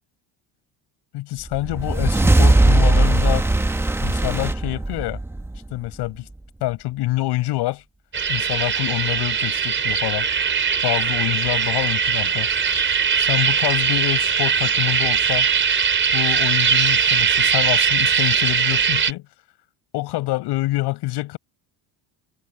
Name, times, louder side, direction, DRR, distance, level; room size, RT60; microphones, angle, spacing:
voice 1, 1.1-3.4 4.0-5.2 5.7-6.3 6.6-7.8 8.3-10.3 10.8-12.5 13.2-15.5 16.1-19.2 19.9-21.4, left 18 dB, 70° left, 6.4 m, -26 dB
sound 1, 1.5-6.0, right 2 dB, 5° right, 0.8 m, -19 dB
sound 2, 8.1-19.1, right 6 dB, 30° right, 5.0 m, -20 dB
cardioid pair, 150°, 41 cm